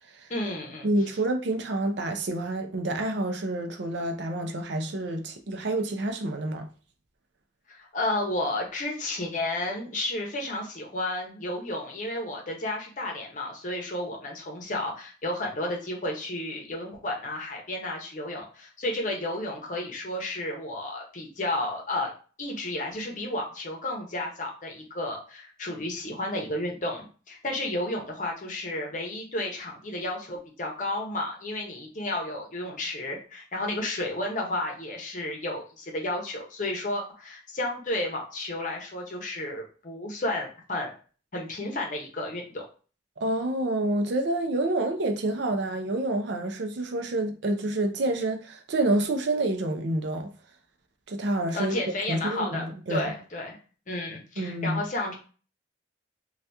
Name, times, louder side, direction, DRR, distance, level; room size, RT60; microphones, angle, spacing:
voice 1, 0.3-0.9 7.7-22.1 22.4-40.9 41.3-42.7 51.5-53.6 53.9-55.1, left 1 dB, 45° left, 0.7 m, -32 dB
voice 2, 0.8-6.7 43.2-50.3 51.1-51.8 52.1-53.1 54.4-54.8, right 1 dB, 70° right, 0.5 m, -28 dB
2.8 x 2.3 x 3.3 m
head